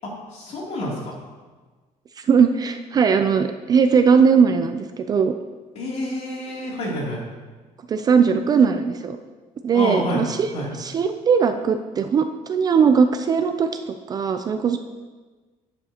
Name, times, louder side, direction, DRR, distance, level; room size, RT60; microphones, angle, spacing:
voice 1, 0.0-1.1 5.7-7.2 9.7-10.7, left 1 dB, 50° left, -4 dB, 2.8 m, -28 dB
voice 2, 2.2-5.3 7.9-9.2 9.6-10.5 10.8-14.8, right 6 dB, 30° right, 8 dB, 0.3 m, -19 dB
11.5 x 9.4 x 2.9 m, 1.3 s
cardioid pair, 175°, 14 cm